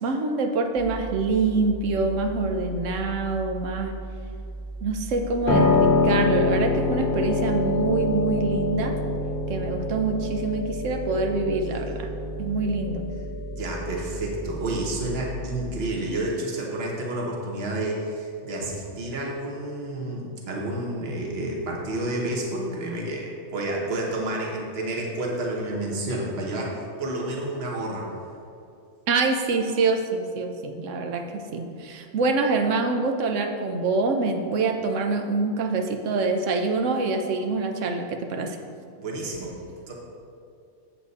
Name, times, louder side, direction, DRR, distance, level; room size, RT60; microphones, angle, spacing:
voice 1, 0.0-3.9 4.8-8.9 9.5-12.1 12.4-13.1 29.1-38.6, right 3 dB, 85° right, 4 dB, 1.1 m, -25 dB
sound 1, 0.8-15.9, right 2 dB, 5° left, 1.1 m, -37 dB
Piano, 5.5-15.4, left 3 dB, 50° left, 0.9 m, -26 dB
voice 2, 13.6-28.1 38.9-39.6 39.9-40.0, right 1 dB, 55° right, -2 dB, 1.4 m, -30 dB
7.9 x 7.4 x 4.1 m, 2.4 s
omnidirectional pair, 1.3 m